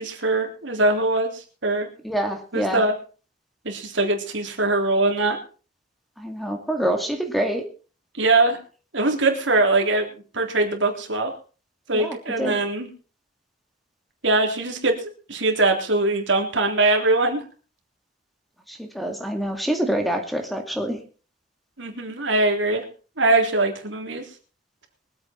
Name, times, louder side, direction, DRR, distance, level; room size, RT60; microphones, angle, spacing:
voice 1, 0.0-1.9 2.5-2.9 3.6-5.4 8.2-8.6 8.9-10.1 10.3-11.3 11.9-12.9 14.2-17.4 21.8-22.8 23.2-24.2, right 2 dB, 70° right, 3 dB, 3.5 m, -22 dB
voice 2, 2.0-2.8 6.2-7.6 11.9-12.6 18.7-21.0, right 1 dB, ahead, 5 dB, 2.2 m, -26 dB
23.5 x 8.8 x 4.4 m, 0.37 s
head